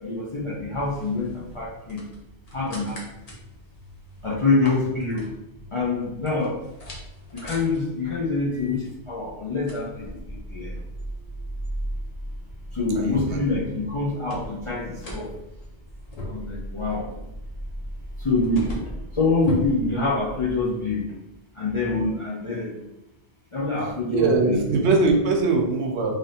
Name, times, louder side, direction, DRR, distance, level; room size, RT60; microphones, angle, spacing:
voice 1, 0.0-1.3 1.6-2.0 2.5-3.0 4.2-5.2 5.7-6.6 7.4-8.8 9.1-10.1 10.5-10.7 12.8-15.3 16.3-17.0 18.2-18.7 19.2-21.0 21.6-22.7 23.5-24.6, left 3 dB, 60° left, -6 dB, 0.3 m, -25 dB
sound 1, 0.8-20.7, equal, 40° left, 0.7 m, -38 dB
voice 2, 13.0-13.4 24.1-26.2, right 3 dB, 90° right, 2 dB, 0.9 m, -21 dB
3.3 x 2.5 x 2.7 m, 0.90 s
omnidirectional pair, 1.1 m